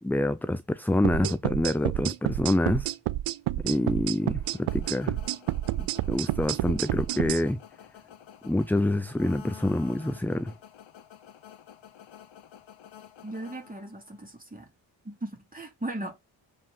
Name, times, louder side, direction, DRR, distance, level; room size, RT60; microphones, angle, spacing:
voice 1, 0.0-2.9 3.6-5.2 5.8-7.6 8.4-10.5, left 1 dB, 5° left, 0.6 m, -27 dB
sound 1, 1.0-7.4, right 16 dB, 85° right, 0.6 m, -29 dB
sound 2, 3.8-14.3, left 9 dB, 65° left, 1.2 m, -50 dB
voice 2, 13.2-14.7 15.0-16.2, right 2 dB, 15° right, 3.5 m, -37 dB
7.1 x 5.0 x 4.1 m
cardioid pair, 55°, 49 cm